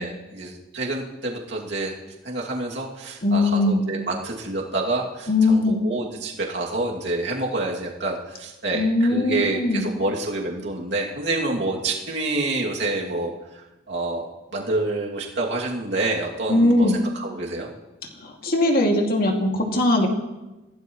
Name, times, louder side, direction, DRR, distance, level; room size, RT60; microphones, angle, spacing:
voice 1, 0.0-1.9 2.2-13.3 13.9-14.3 14.5-17.7, right 2 dB, 60° right, -2 dB, 2.6 m, -27 dB
voice 2, 3.2-3.8 5.3-5.8 8.7-9.8 16.5-17.0 18.2-20.1, left 2 dB, 50° left, 1 dB, 2.4 m, -20 dB
26.0 x 16.5 x 3.1 m, 1.1 s
head